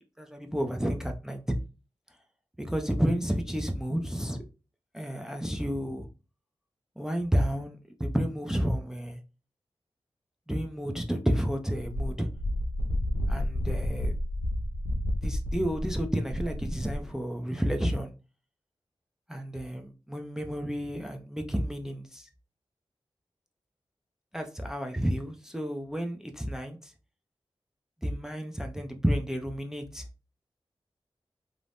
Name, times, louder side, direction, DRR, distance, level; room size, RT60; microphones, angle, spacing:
voice 1, 0.2-1.4 2.6-4.4 4.9-6.1 7.0-9.2 10.5-12.3 13.3-14.1 15.2-18.1 19.3-22.3 24.3-26.9 28.0-30.0, equal, 5° right, 0.4 m, -31 dB
Wind, 11.8-17.1, left 1 dB, 80° left, 0.4 m, -31 dB
2.5 x 2.0 x 3.3 m
cardioid pair, 45°, 10 cm